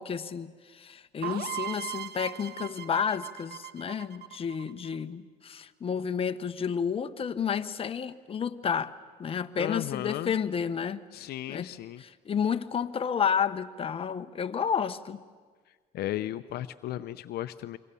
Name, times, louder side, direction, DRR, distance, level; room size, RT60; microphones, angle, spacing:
voice 1, 0.0-8.9 9.2-11.1 11.5-15.2, left 7 dB, 35° left, 1.0 m, -31 dB
sound 1, 1.2-5.0, right 12 dB, 70° right, 1.1 m, -39 dB
voice 2, 9.6-10.3 11.1-12.0 15.9-17.8, left 13 dB, 70° left, 0.7 m, -35 dB
28.5 x 23.0 x 6.9 m
cardioid pair, 110°, 17 cm